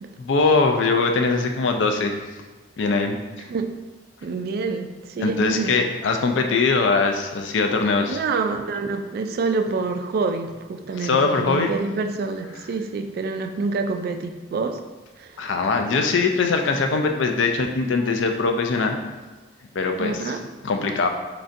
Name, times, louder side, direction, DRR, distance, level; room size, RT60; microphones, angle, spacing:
voice 1, 0.2-2.2 2.8-3.2 5.2-8.2 11.0-11.7 15.4-19.0 19.7-20.3 20.6-21.1, left 4 dB, 75° left, 4 dB, 0.4 m, -21 dB
voice 2, 4.2-5.8 8.0-14.8 15.2-15.5 20.0-20.4, right 4 dB, 55° right, 6 dB, 0.3 m, -27 dB
3.9 x 3.3 x 2.5 m, 1.2 s
head